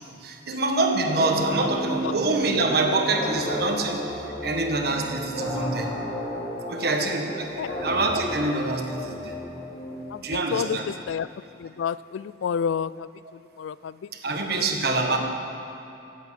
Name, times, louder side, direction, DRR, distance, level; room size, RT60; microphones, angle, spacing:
voice 1, 0.1-5.9 6.7-9.3 10.2-10.9 14.2-15.2, right 2 dB, 55° right, 3 dB, 1.5 m, -26 dB
sound 1, 1.0-10.5, equal, 55° left, 3.4 m, -33 dB
voice 2, 10.1-11.3 11.6-13.1 13.6-13.9 14.5-14.7 15.1-15.2, left 7 dB, 90° left, 19 dB, 0.3 m, -30 dB
17.0 x 8.3 x 8.3 m, 2.9 s
head